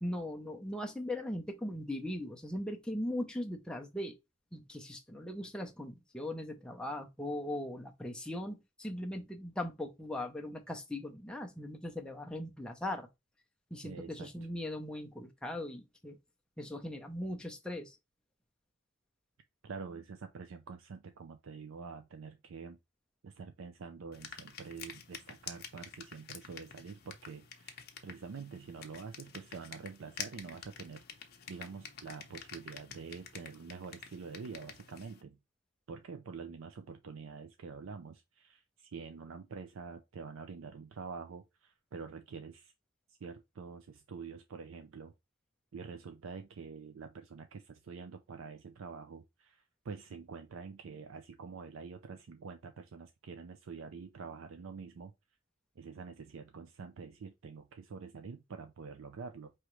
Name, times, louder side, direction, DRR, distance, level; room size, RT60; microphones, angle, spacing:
voice 1, 0.0-4.2 4.5-13.1 13.7-16.2 16.6-18.0, left 1 dB, 5° left, 0.6 m, -39 dB
voice 2, 13.8-14.3 19.6-22.8 23.2-35.4 35.9-42.7 43.1-45.1 45.7-55.1 55.8-59.5, right 5 dB, 70° right, 0.4 m, -46 dB
sound 1, 24.1-35.2, left 7 dB, 50° left, 0.8 m, -49 dB
4.8 x 3.0 x 3.0 m
head